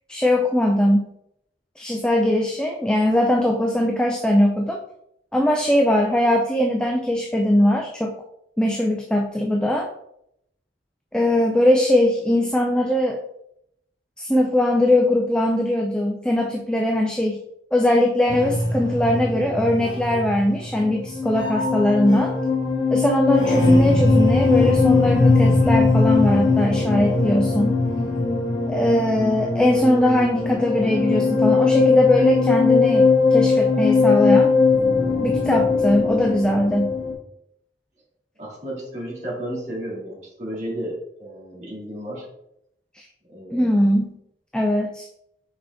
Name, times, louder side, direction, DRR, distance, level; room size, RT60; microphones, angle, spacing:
voice 1, 0.1-1.1 1.8-4.8 5.3-8.2 8.6-9.9 11.1-13.2 14.2-17.4 17.7-22.3 22.9-27.8 28.7-34.5 35.2-36.9 42.9-43.1 43.5-44.2 44.5-45.1, left 1 dB, 5° left, 1 dB, 0.4 m, -20 dB
sound 1, 18.3-37.1, left 3 dB, 20° left, 1.3 m, -20 dB
voice 2, 19.0-19.7 38.4-42.3 43.3-43.7, right 1 dB, 40° right, -5 dB, 2.3 m, -33 dB
5.7 x 5.0 x 3.6 m, 0.76 s
head